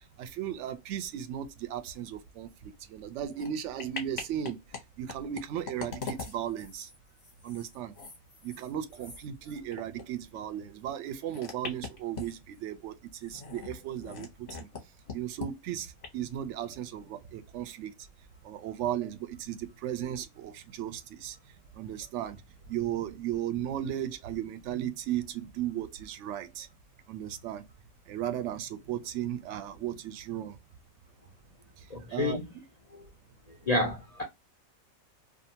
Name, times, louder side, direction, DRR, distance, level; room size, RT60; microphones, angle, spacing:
voice 1, 0.2-4.6 5.0-6.9 7.4-7.9 8.4-13.0 13.2-14.3 14.6-14.7 15.1-17.9 18.4-21.4 21.8-22.4 22.7-26.7 27.1-27.6 28.1-30.6 32.1-32.4, right 10 dB, 65° right, 0.8 m, -36 dB
sound 1, 3.3-3.5 3.8-4.8 5.1-10.0 10.3-10.4 11.3-12.6 13.2-14.8 15.1-15.5 16.0-16.1, left 4 dB, 35° left, 0.8 m, -42 dB
voice 2, 31.9-32.5 32.9-33.0 33.7-34.2, left 2 dB, 60° left, 0.4 m, -29 dB
2.6 x 2.4 x 2.7 m
omnidirectional pair, 1.5 m